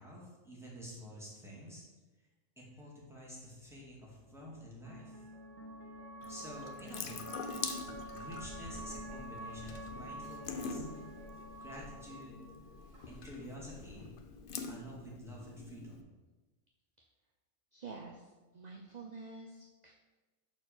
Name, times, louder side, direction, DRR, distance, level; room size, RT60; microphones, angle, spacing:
voice 1, 0.0-1.8 2.6-5.2 6.3-7.3 8.1-10.8 11.6-12.3 13.1-14.1 14.7-16.0, equal, ahead, -5 dB, 2.1 m, -49 dB
sound 1, 3.4-13.7, right 1 dB, 85° right, 1.6 m, -48 dB
Water tap faucet / Sink (filling or washing) / Drip, 6.2-16.0, left 4 dB, 50° left, 0.7 m, -45 dB
voice 2, 17.7-18.3 18.5-19.9, right 4 dB, 40° right, 0 dB, 0.7 m, -48 dB
6.3 x 4.4 x 6.6 m, 1.2 s
omnidirectional pair, 1.4 m